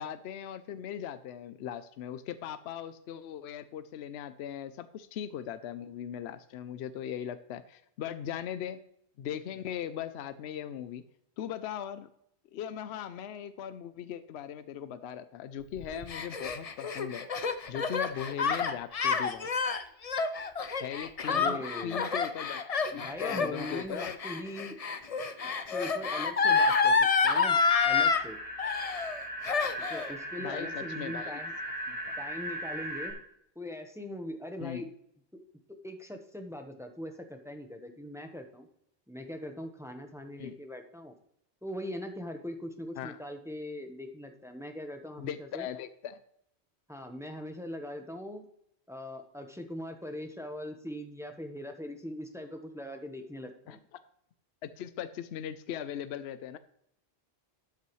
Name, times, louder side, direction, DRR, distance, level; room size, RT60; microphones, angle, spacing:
voice 1, 0.0-8.8 9.2-11.0 11.4-12.1 12.5-17.3 17.7-19.5 20.8-24.2 30.4-31.4 31.9-32.1 34.6-34.9 40.4-40.6 43.0-43.2 45.2-46.2 53.7-54.0 54.6-56.6, left 9 dB, 75° left, 12 dB, 0.8 m, -39 dB
Gasp, 15.8-28.2 28.6-29.2 29.4-30.1, left 5 dB, 40° left, 0.7 m, -28 dB
voice 2, 21.3-22.0 22.9-24.8 25.4-28.4 29.8-31.5 32.2-33.2 33.5-34.9 35.8-38.7 39.1-41.1 41.6-45.7 46.9-48.4 48.9-53.8, left 1 dB, 5° right, 5 dB, 0.9 m, -41 dB
sound 1, 27.5-33.1, equal, 65° right, 4.0 m, -38 dB
13.0 x 8.4 x 3.1 m, 0.73 s
omnidirectional pair, 1.1 m